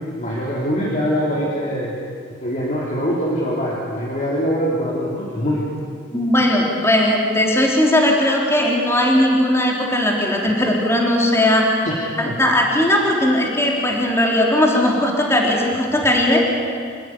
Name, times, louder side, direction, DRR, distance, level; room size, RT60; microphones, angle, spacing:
voice 1, 0.2-2.0 2.4-5.6 11.8-11.9 12.2-12.3, equal, 40° left, -5 dB, 3.9 m, -23 dB
voice 2, 6.1-11.7 12.2-16.4, left 1 dB, 15° left, -1 dB, 3.7 m, -18 dB
27.5 x 17.0 x 9.9 m, 2.2 s
head